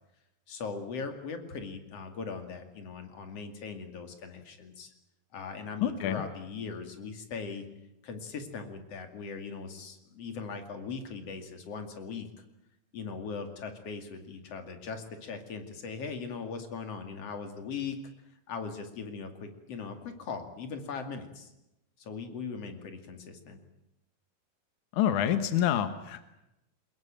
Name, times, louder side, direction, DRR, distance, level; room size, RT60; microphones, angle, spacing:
voice 1, 0.5-4.9 5.3-7.6 8.0-12.3 12.9-18.0 18.5-21.5 22.0-23.6, left 5 dB, 50° left, 7 dB, 3.4 m, -39 dB
voice 2, 5.8-6.2 24.9-26.3, left 10 dB, 75° left, 10 dB, 2.6 m, -27 dB
23.0 x 21.0 x 9.0 m, 0.87 s
omnidirectional pair, 3.6 m